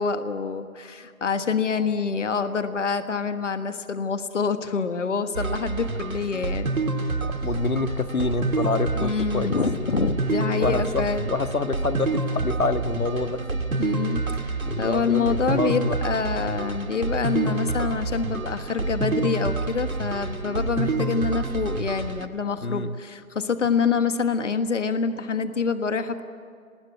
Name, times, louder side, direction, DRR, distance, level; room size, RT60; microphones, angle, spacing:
voice 1, 0.0-6.7 8.9-11.3 13.8-26.2, left 5 dB, 60° left, 9 dB, 1.5 m, -26 dB
sound 1, 5.3-22.3, right 3 dB, 85° right, 2.1 m, -28 dB
voice 2, 7.4-9.5 10.6-13.5 14.6-16.0 22.6-22.9, left 3 dB, 85° left, 8 dB, 1.7 m, -27 dB
28.5 x 20.0 x 9.4 m, 2.3 s
figure-of-eight pair, 155°, 41 cm